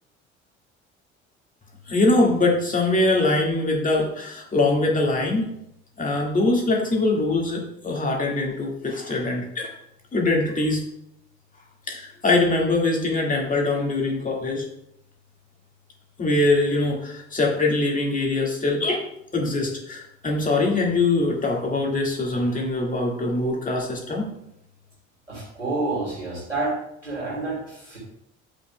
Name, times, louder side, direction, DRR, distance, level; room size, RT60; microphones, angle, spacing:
voice 1, 1.9-5.5 6.0-9.7 10.1-10.8 11.9-14.6 16.2-19.0 19.3-24.2, left 2 dB, 20° left, 0 dB, 1.9 m, -23 dB
voice 2, 25.3-26.8 27.0-28.0, right 2 dB, 90° right, -5 dB, 2.9 m, -28 dB
9.9 x 7.6 x 2.2 m, 0.78 s
figure-of-eight pair, 60°, 36 cm